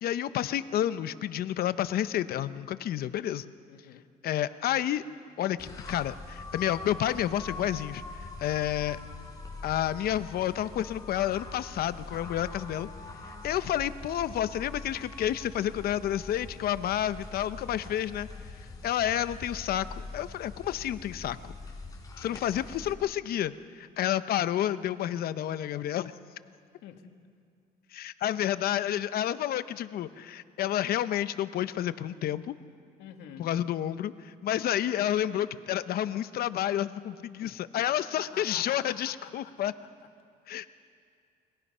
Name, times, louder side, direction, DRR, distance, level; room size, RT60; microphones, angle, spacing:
voice 1, 0.0-3.5 4.2-5.0 5.4-8.0 8.4-9.0 9.6-12.9 13.4-18.3 18.8-19.9 20.1-21.5 22.2-26.1 27.9-32.5 33.4-39.7 40.5-40.7, left 11 dB, 65° left, 13 dB, 0.8 m, -30 dB
voice 2, 3.7-4.1 22.3-22.4 26.8-27.2 33.0-33.5 37.4-37.6 38.2-40.1, left 9 dB, 85° left, 5 dB, 2.0 m, -48 dB
sound 1, 5.6-22.9, left 3 dB, 20° left, 4.2 m, -43 dB
29.5 x 22.0 x 5.6 m, 2.3 s
cardioid pair, 110°, 17 cm